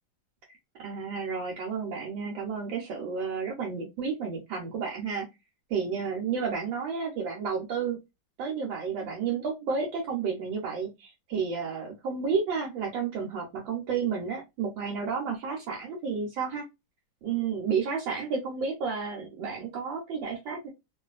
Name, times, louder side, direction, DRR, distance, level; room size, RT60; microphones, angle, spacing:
voice 1, 0.8-5.3 5.7-8.0 8.4-16.6 17.2-20.7, right 5 dB, 80° right, -2 dB, 1.5 m, -31 dB
3.0 x 2.7 x 2.3 m, 0.22 s
omnidirectional pair, 2.1 m